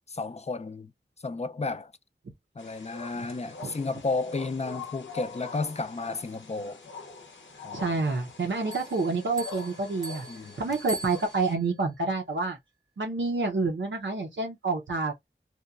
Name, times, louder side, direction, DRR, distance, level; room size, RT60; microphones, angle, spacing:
voice 1, 0.1-0.9 1.2-1.9 2.6-6.8 7.6-7.9 10.3-10.6, left 3 dB, 35° left, 0.3 m, -32 dB
sound 1, 2.6-11.5, left 4 dB, 90° left, 0.7 m, -44 dB
voice 2, 7.7-10.2 10.6-12.6 13.0-15.1, right 3 dB, 90° right, 0.6 m, -28 dB
sound 2, 8.7-11.7, right 1 dB, 20° right, 0.6 m, -42 dB
2.9 x 2.2 x 2.3 m
wide cardioid pair, 50°, 19 cm